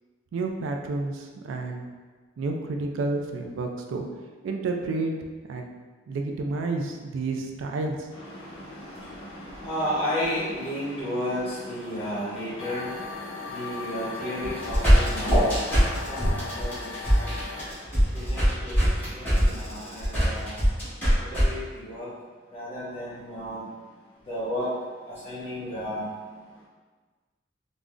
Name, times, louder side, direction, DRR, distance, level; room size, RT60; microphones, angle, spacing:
voice 1, 0.3-1.9 2.4-4.0 4.4-5.1 5.5-5.7 6.1-8.1, right 3 dB, 75° right, 3 dB, 0.3 m, -30 dB
voice 2, 8.1-20.9 21.2-22.1 22.4-23.9 24.2-24.8 25.0-26.7, equal, 30° left, -9 dB, 1.1 m, -33 dB
sound 1, 12.6-17.7, left 4 dB, 75° left, 0.4 m, -38 dB
sound 2, 14.4-21.4, equal, 10° left, 1.2 m, -22 dB
3.6 x 2.0 x 2.4 m, 1.4 s
head